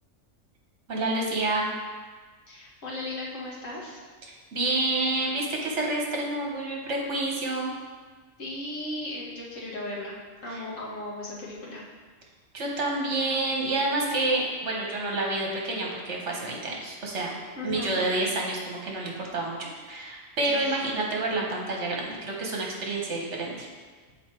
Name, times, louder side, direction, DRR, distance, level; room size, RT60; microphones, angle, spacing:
voice 1, 0.9-1.7 4.3-7.7 10.5-10.6 12.5-17.3 17.6-23.7, right 2 dB, 60° right, -1 dB, 1.4 m, -28 dB
voice 2, 2.5-4.0 8.4-10.2 10.4-11.8 17.5-18.0 20.4-20.8, left 1 dB, 70° left, -4 dB, 1.6 m, -36 dB
6.7 x 4.1 x 4.4 m, 1.4 s
omnidirectional pair, 1.4 m